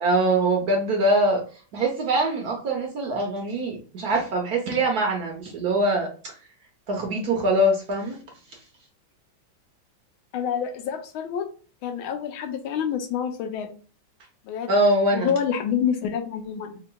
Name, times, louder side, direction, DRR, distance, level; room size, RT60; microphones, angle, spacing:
voice 1, 0.0-6.3 6.9-8.2 14.7-15.3, right 1 dB, 65° right, 1 dB, 1.0 m, -23 dB
voice 2, 10.3-11.5 11.8-13.7 14.5-14.7 15.1-16.8, left 8 dB, 85° left, 5 dB, 1.5 m, -27 dB
4.4 x 2.9 x 2.2 m, 0.38 s
omnidirectional pair, 2.2 m